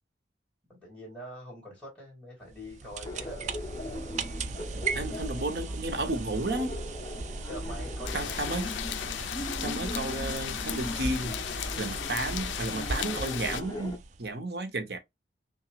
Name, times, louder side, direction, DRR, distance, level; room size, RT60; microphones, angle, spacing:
voice 1, 0.7-3.5 7.5-8.5, equal, 5° left, 2.2 m, -44 dB
sound 1, 2.5-14.3, right 3 dB, 40° right, 0.4 m, -37 dB
Laughter, 3.1-14.0, left 1 dB, 20° left, 0.7 m, -40 dB
voice 2, 4.9-6.8 8.1-8.7 9.6-11.4 11.8-15.0, right 2 dB, 60° right, 0.9 m, -32 dB
sound 2, 8.1-13.6, left 12 dB, 85° left, 0.3 m, -36 dB
5.8 x 2.3 x 2.4 m
head